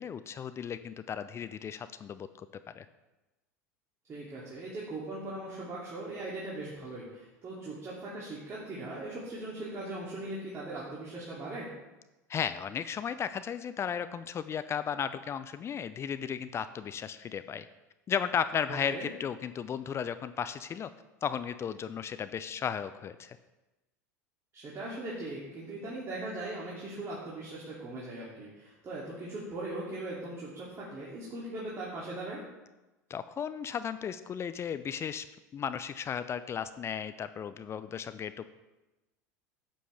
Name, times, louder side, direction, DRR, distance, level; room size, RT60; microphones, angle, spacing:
voice 1, 0.0-2.9 12.3-17.7 18.1-20.9 21.2-23.4 33.1-35.3 35.5-38.5, left 7 dB, 30° left, 13 dB, 0.5 m, -35 dB
voice 2, 4.1-11.7 18.7-19.1 24.5-32.4, right 2 dB, 30° right, -7 dB, 2.7 m, -39 dB
11.5 x 7.7 x 3.4 m, 1.1 s
hypercardioid pair, 80°, 9 cm